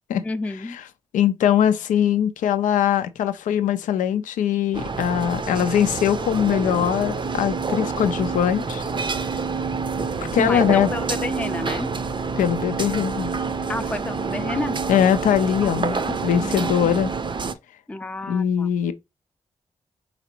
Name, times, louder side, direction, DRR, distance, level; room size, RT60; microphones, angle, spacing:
voice 1, 0.2-0.8 10.4-11.9 13.7-14.8 15.6-16.9 17.9-18.7, left 2 dB, 10° left, 0.4 m, -30 dB
voice 2, 1.1-8.8 10.3-10.9 12.4-13.3 14.9-17.1 18.3-18.9, left 9 dB, 85° left, 0.4 m, -21 dB
sound 1, 4.7-17.5, right 4 dB, 40° right, 0.5 m, -27 dB
3.9 x 3.3 x 2.9 m
supercardioid pair, 40°, 13 cm